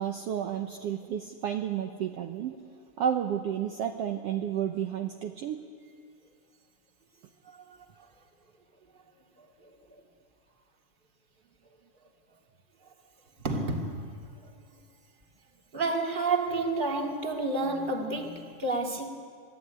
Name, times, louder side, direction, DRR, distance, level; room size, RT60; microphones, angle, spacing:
voice 1, 0.0-2.6 3.0-5.7, right 9 dB, 65° right, 5 dB, 1.7 m, -31 dB
voice 2, 7.5-8.1 9.4-10.0 13.4-14.2 14.4-14.5 15.7-19.1, right 3 dB, 20° right, 2 dB, 2.1 m, -31 dB
27.0 x 18.0 x 9.4 m, 2.3 s
omnidirectional pair, 3.4 m